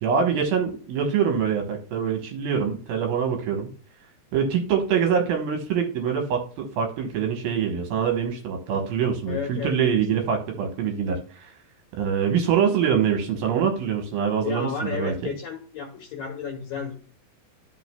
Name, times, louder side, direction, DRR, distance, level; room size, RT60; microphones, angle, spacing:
voice 1, 0.0-3.7 4.3-11.5 12.0-15.3, right 7 dB, 70° right, 3 dB, 2.7 m, -24 dB
voice 2, 9.3-10.0 14.4-17.0, left 6 dB, 65° left, 0 dB, 2.6 m, -32 dB
12.5 x 5.8 x 2.2 m, 0.44 s
omnidirectional pair, 4.9 m